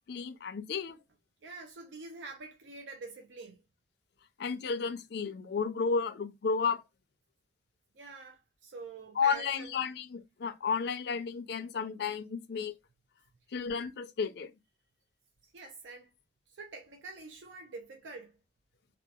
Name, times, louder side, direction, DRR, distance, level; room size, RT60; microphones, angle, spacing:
voice 1, 0.1-1.0 4.4-6.8 9.2-12.7 13.5-14.5, left 5 dB, 65° left, 0.4 m, -32 dB
voice 2, 1.4-3.6 7.9-9.8 15.5-16.1 16.5-18.3, right 3 dB, 85° right, 0.5 m, -46 dB
2.7 x 2.3 x 2.3 m
head